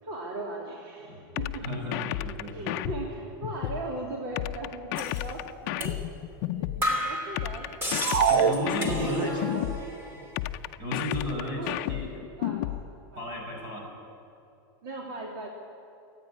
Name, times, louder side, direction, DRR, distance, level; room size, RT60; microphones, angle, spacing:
voice 1, 0.0-1.6 2.5-6.0 6.5-7.7 8.8-9.7 11.3-11.8 12.4-12.7 13.1-13.3 14.8-15.5, right 2 dB, 60° right, -2 dB, 3.0 m, -38 dB
sound 1, 1.4-3.8 4.4-6.8 7.4-9.8 10.4-12.8, left 15 dB, 45° left, 0.6 m, -32 dB
voice 2, 1.6-2.9 8.3-9.4 10.8-12.3 13.2-13.9, equal, 35° right, 0 dB, 5.8 m, -33 dB
sound 2, 5.0-5.2 5.8-6.0 6.3-6.4 6.8-9.4 9.7-10.3, left 1 dB, 20° right, 2.9 m, -33 dB
sound 3, 8.0-9.5, right 7 dB, 80° right, 1.0 m, -25 dB
28.0 x 9.8 x 10.0 m, 2.6 s
supercardioid pair, 165°, 13 cm